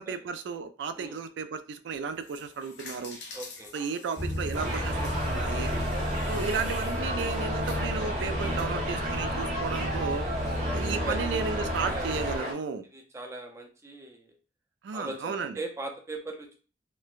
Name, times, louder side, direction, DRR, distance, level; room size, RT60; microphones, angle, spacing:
voice 1, 0.0-3.2 3.7-5.7 6.3-10.3 10.7-12.9 14.8-15.6, right 5 dB, 90° right, 10 dB, 0.3 m, -34 dB
sound 1, 2.0-8.7, left 3 dB, 80° left, 0.7 m, -47 dB
voice 2, 3.3-3.7 5.9-6.3 10.0-12.1 12.9-14.4 14.9-16.6, right 2 dB, 15° right, 3 dB, 0.4 m, -41 dB
sound 2, 4.2-12.4, equal, 65° right, 1.1 m, -32 dB
sound 3, 4.5-12.5, equal, 40° right, 0.8 m, -33 dB
3.1 x 2.1 x 2.3 m, 0.37 s
head